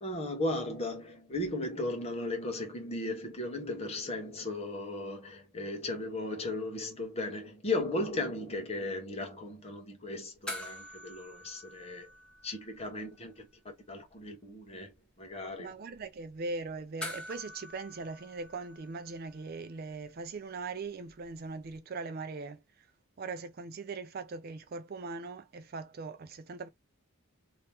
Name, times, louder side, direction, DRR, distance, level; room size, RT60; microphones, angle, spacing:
voice 1, 0.0-12.1 12.4-13.5 13.9-14.9 15.2-15.8, left 2 dB, 30° left, 1.1 m, -36 dB
sound 1, 10.5-13.1 13.4-13.5 17.0-19.6 21.8-21.9, left 1 dB, 5° left, 1.2 m, -45 dB
voice 2, 15.6-22.6 23.2-26.7, right 3 dB, 45° right, 0.4 m, -40 dB
3.0 x 2.9 x 3.4 m
head